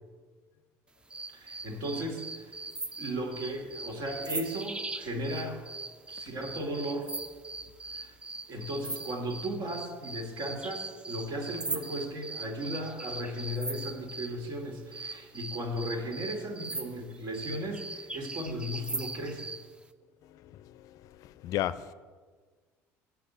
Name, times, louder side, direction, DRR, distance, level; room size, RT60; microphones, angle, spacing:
Ambience Night Loop Stereo, 1.1-14.4 14.9-19.7, right 2 dB, 15° right, 0.5 m, -40 dB
voice 1, 1.3-2.6 3.0-5.7 6.1-7.1 7.9-8.2 8.5-19.6, equal, 65° right, 2.2 m, -36 dB
voice 2, 20.2-21.9, left 12 dB, 60° left, 0.5 m, -36 dB
8.6 x 5.8 x 8.0 m
supercardioid pair, 105°, 7 cm